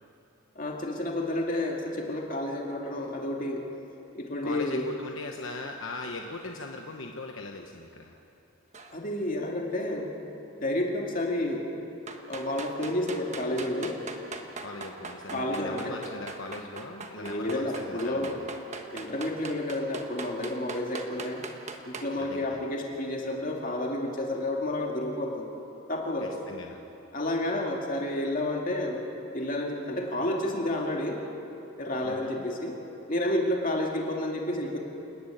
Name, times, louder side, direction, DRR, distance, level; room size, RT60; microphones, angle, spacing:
voice 1, 0.6-3.6 4.1-4.8 8.9-10.1 10.6-11.7 12.3-14.0 15.3-16.0 17.2-18.3 18.9-21.4 21.9-25.5 25.9-26.3 27.1-29.0 29.3-31.2 31.8-32.8 33.1-34.8, left 1 dB, 40° left, 0 dB, 2.4 m, -30 dB
voice 2, 4.4-8.1 14.6-18.4 22.2-22.6 26.2-26.8 32.0-32.4, left 2 dB, 65° left, 2 dB, 1.1 m, -40 dB
sound 1, 8.7-9.0 12.1-22.1, right 3 dB, 30° right, 1.3 m, -40 dB
29.0 x 11.0 x 9.2 m, 2.9 s
head